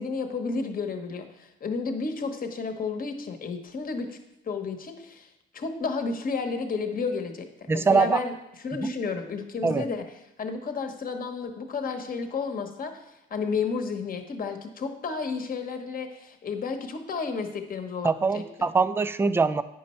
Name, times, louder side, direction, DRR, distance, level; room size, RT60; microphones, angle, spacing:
voice 1, 0.0-4.1 4.5-5.3 5.5-8.3 8.6-10.0 10.4-12.9 13.3-18.7, left 4 dB, 45° left, 6 dB, 1.0 m, -32 dB
voice 2, 7.7-8.2 8.7-8.9 9.6-9.8 18.0-19.6, right 4 dB, 10° right, 13 dB, 0.3 m, -23 dB
9.2 x 5.3 x 4.3 m, 0.90 s
cardioid pair, 90°, 20 cm